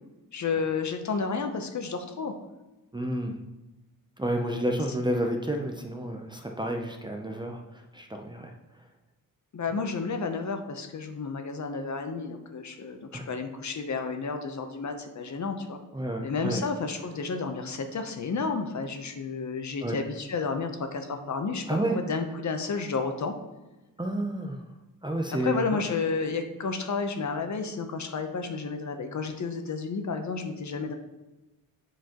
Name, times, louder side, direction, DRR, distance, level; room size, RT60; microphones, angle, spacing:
voice 1, 0.3-2.3 9.5-15.8 16.2-21.6 21.9-23.3 25.4-30.9, left 4 dB, 50° left, 6 dB, 0.7 m, -31 dB
voice 2, 2.9-3.3 4.2-8.5 13.1-13.2 15.9-16.7 19.8-20.0 21.7-22.0 24.0-24.6 25.0-25.8, right 1 dB, 15° right, 2 dB, 0.5 m, -30 dB
7.9 x 5.0 x 2.9 m, 1.1 s
wide cardioid pair, 160°, 36 cm